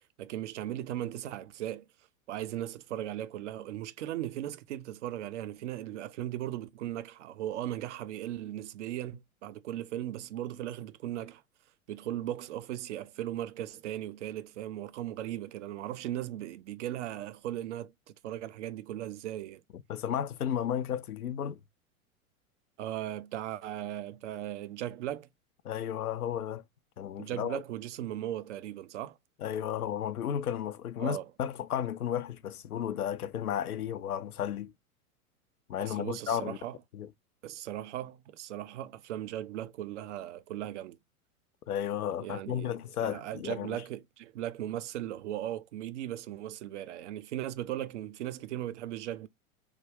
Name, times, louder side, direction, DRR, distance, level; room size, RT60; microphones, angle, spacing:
voice 1, 0.0-1.8 2.3-11.4 11.9-17.9 18.2-19.6 22.8-25.3 27.2-29.2 31.0-31.3 35.8-36.8 37.4-41.0 42.2-49.3, right 12 dB, 55° right, 0.5 m, -37 dB
voice 2, 19.7-21.6 25.6-26.6 27.0-27.6 29.4-34.7 35.7-36.6 36.9-37.1 41.7-43.8, left 9 dB, 80° left, 0.5 m, -33 dB
3.2 x 2.2 x 3.3 m
figure-of-eight pair, 95°, 44 cm